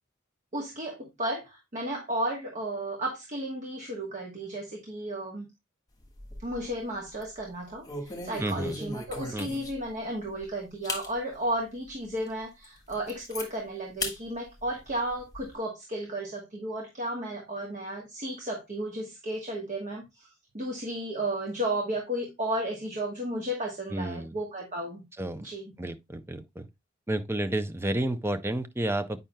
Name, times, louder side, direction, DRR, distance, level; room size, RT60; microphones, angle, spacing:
voice 1, 0.5-5.5 6.4-20.3 20.5-25.0 25.4-25.7, right 1 dB, 40° right, 1.2 m, -33 dB
sound 1, 6.0-6.7 7.1-7.3 7.8-9.9 10.4-10.5 10.8-11.1 11.6-11.7 12.2-12.3 12.6-13.5 14.0-14.2 14.6-15.5, left 2 dB, 20° left, 1.4 m, -37 dB
voice 2, 8.4-8.8 9.3-9.5 23.9-24.4 25.2-25.5 25.8-26.7 27.1-29.2, right 1 dB, 10° right, 0.5 m, -31 dB
8.8 x 5.4 x 2.2 m
head